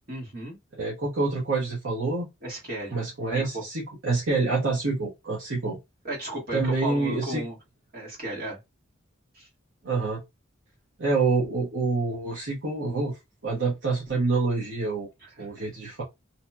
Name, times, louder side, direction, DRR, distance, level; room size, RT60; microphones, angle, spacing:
voice 1, 0.1-0.6 2.4-3.0 3.3-3.6 4.3-4.4 6.0-7.6 7.9-8.6 9.3-9.5 15.2-15.5, right 1 dB, 50° right, 1.6 m, -35 dB
voice 2, 0.8-2.3 2.9-5.8 6.5-7.4 9.8-10.2 11.0-13.2 13.4-15.1 15.4-16.0, right 3 dB, 70° right, 1.0 m, -27 dB
2.8 x 2.8 x 2.2 m
head